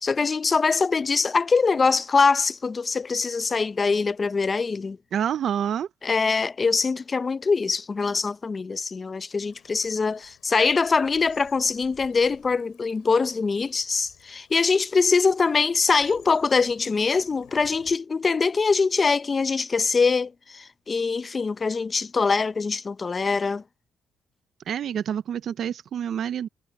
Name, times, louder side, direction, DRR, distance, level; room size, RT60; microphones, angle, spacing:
voice 1, 0.0-5.0 6.0-23.6, left 4 dB, 35° left, 0.6 m, -23 dB
voice 2, 5.1-5.9 24.7-26.5, right 9 dB, 65° right, 0.5 m, -27 dB
Bird vocalization bird call bird song / Stream, 9.3-18.0, left 14 dB, 90° left, 7.2 m, -56 dB
cardioid pair, 90°, 0 cm